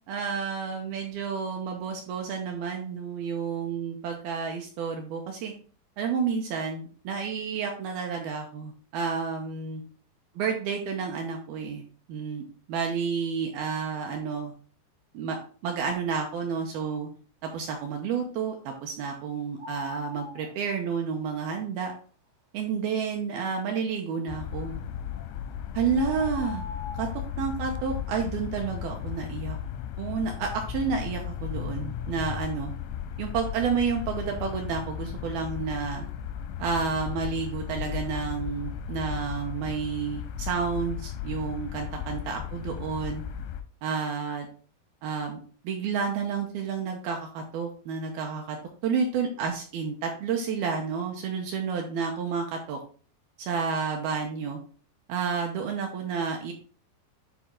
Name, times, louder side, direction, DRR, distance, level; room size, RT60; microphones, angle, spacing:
voice 1, 0.1-5.5 6.0-9.8 10.4-12.4 12.7-14.5 15.1-15.4 15.6-17.1 17.4-21.9 22.5-24.8 25.7-26.7 26.9-27.1 27.4-29.6 30.0-32.7 33.2-36.0 36.6-43.2 43.8-44.5 45.0-45.4 45.6-48.6 48.8-52.8 53.4-54.6 55.1-56.5, right 6 dB, 80° right, 2 dB, 2.3 m, -30 dB
sound 1, 19.6-20.5 25.1-25.2 25.9-27.2, left 4 dB, 60° right, 0.9 m, -40 dB
sound 2, 24.3-43.6, left 10 dB, 85° left, 3.0 m, -35 dB
10.5 x 4.1 x 3.7 m, 0.42 s
omnidirectional pair, 5.1 m